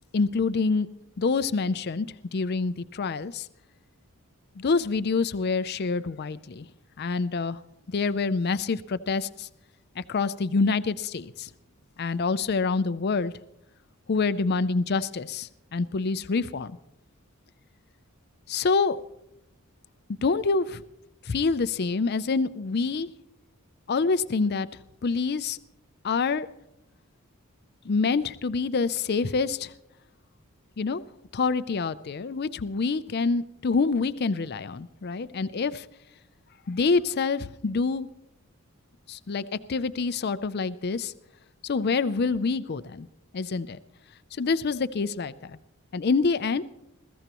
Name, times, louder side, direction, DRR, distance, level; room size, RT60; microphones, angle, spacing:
voice 1, 0.1-0.9 1.2-2.1 2.3-3.5 4.6-6.7 7.0-7.6 7.9-9.5 10.0-11.5 12.0-13.3 14.1-16.8 18.5-19.0 20.2-20.8 21.2-23.1 23.9-24.7 25.0-25.6 26.0-26.5 27.8-29.7 30.8-31.0 31.3-35.9 36.7-38.1 39.1-41.1 41.6-43.1 43.3-43.8 44.4-45.6 45.9-46.6, left 4 dB, 45° left, 14 dB, 0.5 m, -26 dB
21.5 x 15.0 x 3.0 m, 0.88 s
head